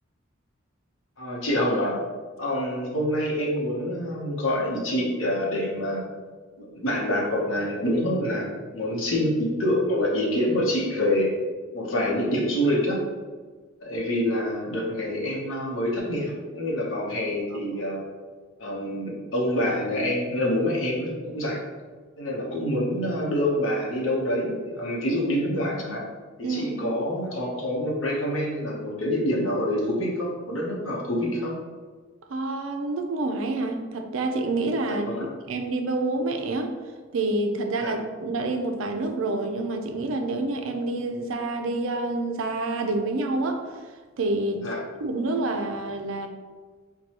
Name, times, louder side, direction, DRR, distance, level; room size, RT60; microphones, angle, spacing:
voice 1, 1.2-2.0 2.4-6.1 6.6-11.3 11.7-13.0 13.8-18.0 18.6-21.6 22.2-26.0 26.4-31.6 34.9-35.3 37.8-38.0 44.6-44.8, left 1 dB, 80° left, -3 dB, 0.9 m, -26 dB
voice 2, 26.4-26.8 32.3-35.1 35.5-36.7 37.1-43.7 44.2-44.6 45.0-46.3, right 2 dB, 85° right, 5 dB, 0.4 m, -27 dB
4.6 x 2.3 x 2.9 m, 1.4 s
head